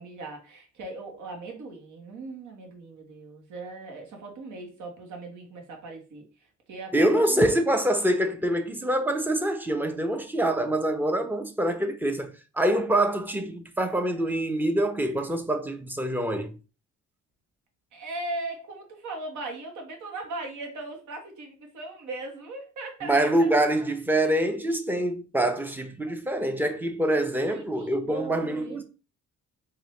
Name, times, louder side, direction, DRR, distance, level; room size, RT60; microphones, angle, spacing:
voice 1, 0.0-6.2 6.7-7.4 17.9-23.5 27.5-28.8, right 2 dB, 75° right, 1.4 m, -38 dB
voice 2, 6.9-12.3 12.6-16.5 23.0-28.8, right 1 dB, 5° right, 0.7 m, -25 dB
4.5 x 2.8 x 3.2 m
cardioid pair, 90°, 30 cm